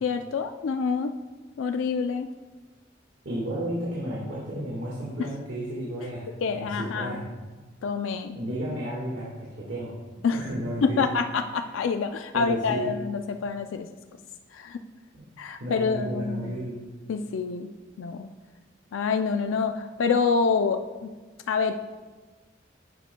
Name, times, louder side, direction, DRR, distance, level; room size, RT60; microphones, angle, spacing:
voice 1, 0.0-1.1 1.6-2.3 5.2-5.3 6.4-7.2 7.8-8.4 10.2-10.4 10.8-13.9 14.5-14.8 15.4-16.5 17.1-17.7 18.0-18.3 18.9-21.1 21.5-21.7, left 5 dB, 85° left, 7 dB, 0.4 m, -27 dB
voice 2, 3.3-7.3 8.3-9.9 10.4-11.0 12.3-12.9 15.1-15.3 15.6-16.8, right 1 dB, 70° right, -6 dB, 1.6 m, -33 dB
10.5 x 6.7 x 2.2 m, 1.3 s
head